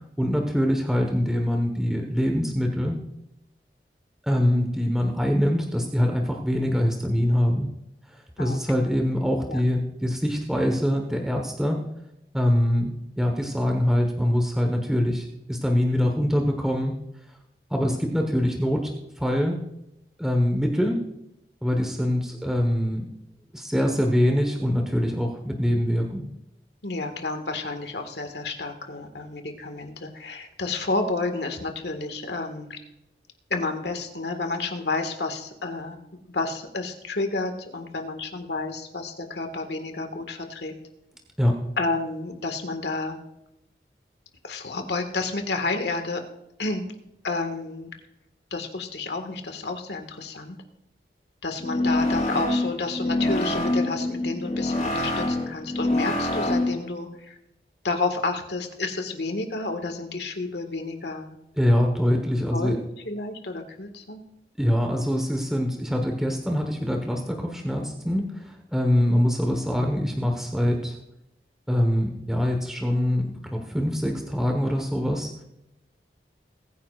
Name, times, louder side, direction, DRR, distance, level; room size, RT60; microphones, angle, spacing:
voice 1, 0.2-3.0 4.2-7.7 8.1-11.8 12.3-17.0 17.7-19.6 20.2-21.1 21.6-23.1 23.5-26.3 41.4-41.7 61.6-62.8 64.6-71.0 71.7-75.3, equal, 5° right, 2 dB, 1.2 m, -24 dB
voice 2, 26.8-32.8 33.5-36.0 36.3-40.7 41.8-43.2 44.4-46.2 46.6-46.9 47.2-47.9 48.5-50.6 51.4-57.4 57.8-61.4 62.5-64.2, left 3 dB, 75° left, 6 dB, 1.8 m, -30 dB
sound 1, 51.6-56.9, left 1 dB, 40° left, 4.1 m, -25 dB
21.5 x 9.8 x 2.5 m, 0.87 s
head